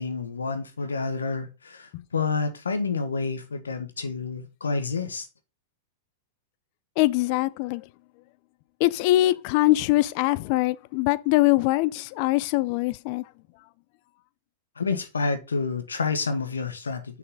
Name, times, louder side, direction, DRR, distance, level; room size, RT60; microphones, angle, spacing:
voice 1, 0.0-5.3 14.8-17.2, left 4 dB, 90° left, 1.3 m, -29 dB
voice 2, 7.0-7.9 8.8-13.2, left 17 dB, 50° left, 0.5 m, -23 dB
6.4 x 5.7 x 3.9 m
hypercardioid pair, 105°, 0 cm